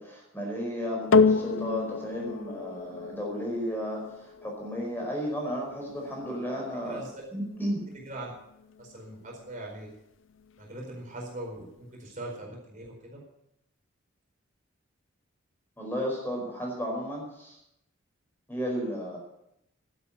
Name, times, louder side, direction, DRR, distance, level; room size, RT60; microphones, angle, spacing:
voice 1, 0.0-7.0 7.3-7.8 15.8-17.6 18.5-19.2, equal, 10° left, -2 dB, 4.9 m, -33 dB
sound 1, 1.1-9.7 10.4-10.5, left 4 dB, 70° left, 0.6 m, -30 dB
voice 2, 7.9-8.3 8.8-9.9 10.6-13.2, right 1 dB, 40° right, -1 dB, 4.6 m, -41 dB
12.5 x 10.5 x 8.5 m, 0.81 s
head